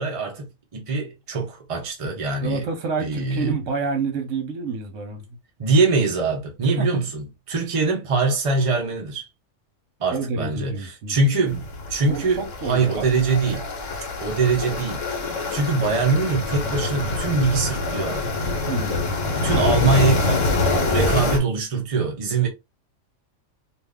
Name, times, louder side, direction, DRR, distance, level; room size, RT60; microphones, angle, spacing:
voice 1, 0.0-2.6 3.0-3.5 5.6-9.3 10.0-12.4 12.7-13.7 14.2-15.0 15.5-18.4 19.3-22.5, right 4 dB, 35° right, 0.6 m, -23 dB
voice 2, 2.4-5.4 6.6-7.0 10.1-11.2 12.0-13.1 18.6-19.1 19.5-19.6, right 4 dB, 75° right, 1.2 m, -29 dB
sound 1, 11.5-21.4, left 3 dB, 85° left, 1.2 m, -25 dB
2.6 x 2.4 x 3.5 m
omnidirectional pair, 1.3 m